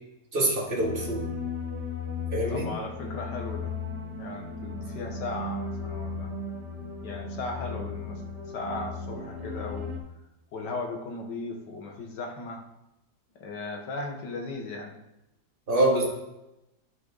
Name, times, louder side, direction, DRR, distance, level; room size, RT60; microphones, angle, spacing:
voice 1, 0.3-1.2 2.3-2.7 15.7-16.0, right 1 dB, 30° right, -3 dB, 2.3 m, -25 dB
sound 1, 0.8-10.0, left 4 dB, 80° right, 2.3 m, -36 dB
voice 2, 2.5-3.7 4.2-6.3 7.0-8.2 8.5-9.9 10.5-12.6 13.4-15.0, left 3 dB, 80° left, 2 dB, 1.9 m, -36 dB
11.0 x 5.9 x 4.0 m, 0.91 s
omnidirectional pair, 1.8 m